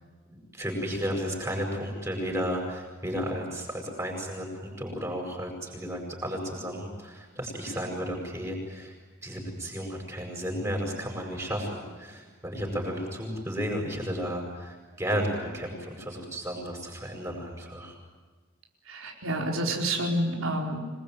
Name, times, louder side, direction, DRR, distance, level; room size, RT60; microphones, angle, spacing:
voice 1, 0.3-9.0 9.2-18.0, equal, 15° right, 1 dB, 7.5 m, -33 dB
voice 2, 18.9-20.8, right 1 dB, 90° right, 1 dB, 4.7 m, -28 dB
27.0 x 21.5 x 9.5 m, 1.4 s
head